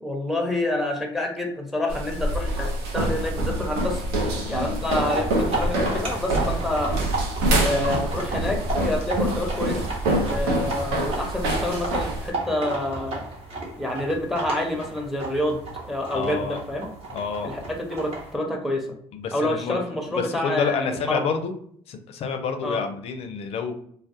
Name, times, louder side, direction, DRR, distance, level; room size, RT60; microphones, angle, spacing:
voice 1, 0.0-4.0 4.5-7.0 7.6-9.8 10.2-13.2 13.8-16.9 17.4-18.9 19.3-21.3 22.6-22.8, left 1 dB, ahead, 1 dB, 0.7 m, -28 dB
sound 1, 1.9-12.3, right 1 dB, 80° right, 0.6 m, -26 dB
voice 2, 4.4-4.7 16.1-16.6 17.1-17.5 19.1-19.8 20.1-21.5 21.9-23.7, left 5 dB, 50° left, 7 dB, 0.4 m, -28 dB
sound 2, 4.8-18.3, right 2 dB, 50° right, 1.0 m, -33 dB
2.3 x 2.0 x 2.6 m, 0.64 s
hypercardioid pair, 70°, 13 cm